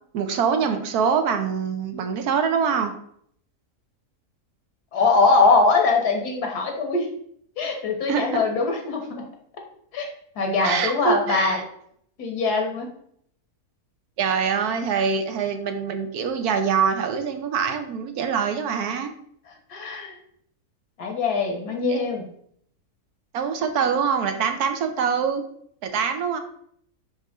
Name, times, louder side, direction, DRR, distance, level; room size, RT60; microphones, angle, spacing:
voice 1, 0.1-2.9 8.1-8.4 10.6-11.6 14.2-19.1 21.9-22.0 23.3-25.4 25.8-26.4, right 6 dB, 75° right, 7 dB, 1.2 m, -24 dB
voice 2, 4.9-7.0 7.6-9.2 9.9-10.1 10.4-11.6 12.2-12.9 19.7-20.1 21.0-22.3, left 3 dB, 80° left, 3 dB, 1.8 m, -22 dB
5.5 x 5.1 x 3.6 m, 0.67 s
omnidirectional pair, 1.6 m